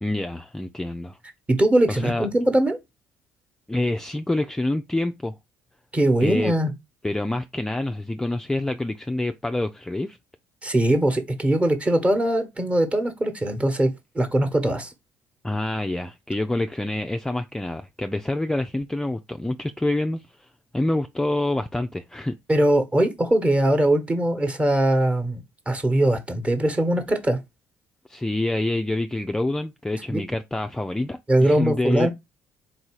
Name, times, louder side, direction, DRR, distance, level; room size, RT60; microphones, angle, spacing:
voice 1, 0.0-1.2 1.9-2.3 3.7-5.3 6.2-6.5 7.0-10.2 15.4-20.2 20.7-22.4 28.1-32.1, left 2 dB, 10° left, 0.4 m, -27 dB
voice 2, 1.5-2.8 5.9-6.7 10.6-13.9 14.1-14.9 22.5-27.4 30.1-30.2 31.3-32.1, right 1 dB, 20° right, 1.1 m, -21 dB
4.1 x 2.7 x 4.5 m
supercardioid pair, 75°, 6 cm